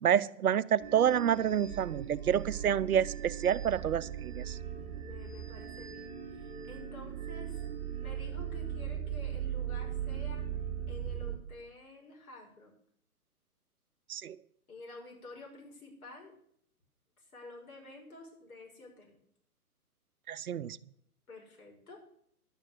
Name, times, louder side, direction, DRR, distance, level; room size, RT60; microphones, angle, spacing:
voice 1, 0.0-4.6 14.1-14.4 20.3-20.8, right 9 dB, 70° right, 16 dB, 0.7 m, -28 dB
sound 1, 0.8-11.4, right 9 dB, 20° right, 2.6 m, -39 dB
voice 2, 5.0-7.6 8.0-10.4 10.9-12.7 14.7-16.3 17.3-19.2 21.3-22.0, left 2 dB, 65° left, 0 dB, 5.9 m, -50 dB
11.0 x 9.3 x 6.6 m, 0.68 s
hypercardioid pair, 140°, 45 cm